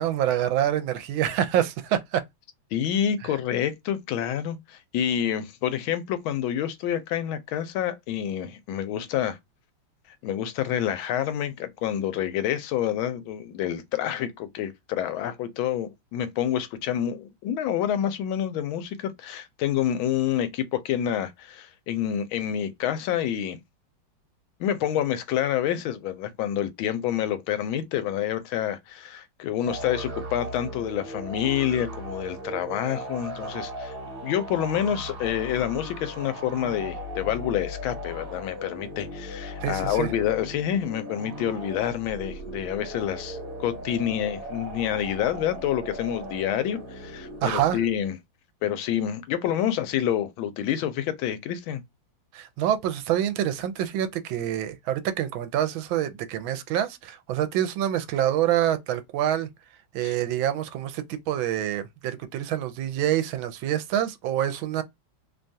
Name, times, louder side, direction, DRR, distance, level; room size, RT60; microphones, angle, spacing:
voice 1, 0.0-2.2 39.6-40.1 47.4-47.8 52.3-59.5 59.9-64.8, right 11 dB, 80° right, 1.3 m, -26 dB
voice 2, 2.7-9.4 10.2-23.6 24.6-33.9 34.2-48.2 48.6-51.8 60.0-60.1, left 10 dB, 85° left, 1.4 m, -28 dB
sound 1, 29.7-48.1, equal, 50° right, 1.4 m, -37 dB
3.3 x 2.3 x 2.6 m
omnidirectional pair, 2.2 m